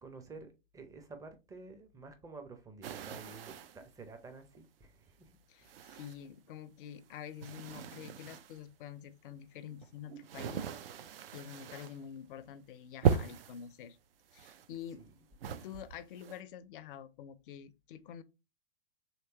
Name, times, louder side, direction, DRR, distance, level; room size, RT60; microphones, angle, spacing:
voice 1, 0.0-5.3 5.6-5.9 15.0-15.1, right 3 dB, 10° right, 0.5 m, -51 dB
sound 1, 2.8-3.9 4.6-4.7 5.6-6.5 6.8-8.6 9.4-12.0 12.4-12.7 13.0-13.6 14.3-15.1 15.4-16.4, right 7 dB, 65° right, 0.5 m, -37 dB
voice 2, 5.5-10.6 11.3-14.0 14.3-15.0 15.5-18.2, left 9 dB, 55° left, 0.4 m, -47 dB
3.1 x 2.9 x 2.8 m
figure-of-eight pair, 100°, 31 cm